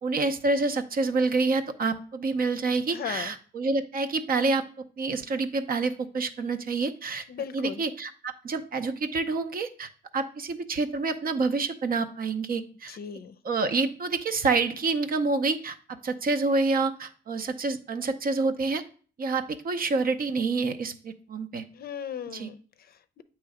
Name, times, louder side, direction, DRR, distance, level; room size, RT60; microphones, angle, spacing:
voice 1, 0.0-4.6 5.0-7.2 7.5-13.0 13.4-18.8 19.2-21.6 22.3-22.5, right 3 dB, 45° right, 9 dB, 0.7 m, -27 dB
voice 2, 2.9-3.3 7.3-7.8 12.9-13.4 21.7-23.2, left 8 dB, 50° left, 11 dB, 0.5 m, -37 dB
8.1 x 3.1 x 4.9 m, 0.42 s
cardioid pair, 90°, 20 cm